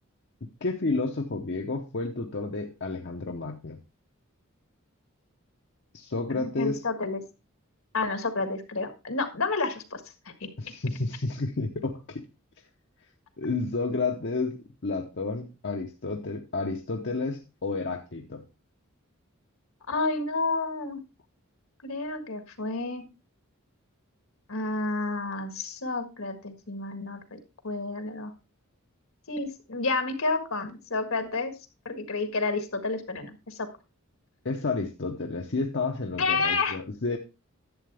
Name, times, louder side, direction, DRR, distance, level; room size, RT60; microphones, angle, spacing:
voice 1, 0.4-3.8 5.9-6.8 10.6-12.3 13.4-14.6 14.8-18.4 34.4-37.2, left 3 dB, 55° left, 3 dB, 0.9 m, -31 dB
voice 2, 6.3-7.2 7.9-10.5 19.9-21.0 21.8-23.0 24.5-28.3 29.3-31.5 31.8-33.7 36.2-36.8, left 3 dB, 75° left, 8 dB, 1.7 m, -30 dB
11.5 x 7.8 x 3.4 m, 0.29 s
head